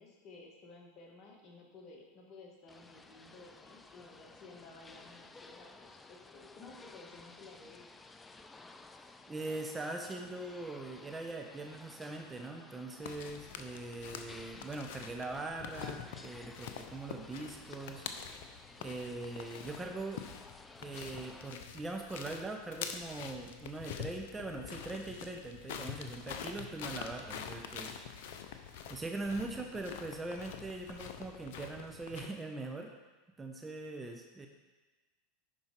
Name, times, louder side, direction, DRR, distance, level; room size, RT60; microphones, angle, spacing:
voice 1, 0.0-8.0, left 3 dB, 45° left, 0 dB, 1.9 m, -54 dB
sound 1, 2.7-21.5, left 3 dB, 15° left, 0.5 m, -55 dB
voice 2, 9.3-18.0 18.8-20.2 20.8-28.4 28.9-32.9 33.4-34.5, right 2 dB, 15° right, 2 dB, 0.9 m, -41 dB
sound 2, 13.0-32.3, left 7 dB, 65° left, 0.7 m, -46 dB
11.0 x 4.6 x 4.5 m, 1.2 s
hypercardioid pair, 90°, 0 cm